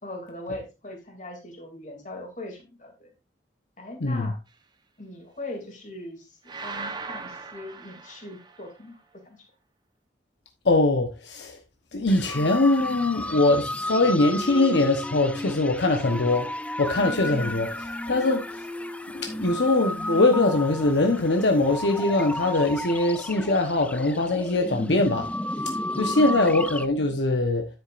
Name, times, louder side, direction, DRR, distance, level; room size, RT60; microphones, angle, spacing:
voice 1, 0.0-3.1 3.8-4.4 5.0-9.5 17.3-17.7 26.1-26.6, left 2 dB, 45° left, 2.8 m, -40 dB
voice 2, 4.0-4.3 10.6-11.6 11.9-16.5 16.8-17.7 18.1-18.7 19.1-25.3 25.6-27.7, left 2 dB, 75° left, 1.0 m, -22 dB
sound 1, 6.5-8.7, right 4 dB, 25° right, 1.0 m, -38 dB
sound 2, 12.1-26.9, left 1 dB, 5° left, 0.4 m, -33 dB
10.0 x 8.1 x 2.5 m
head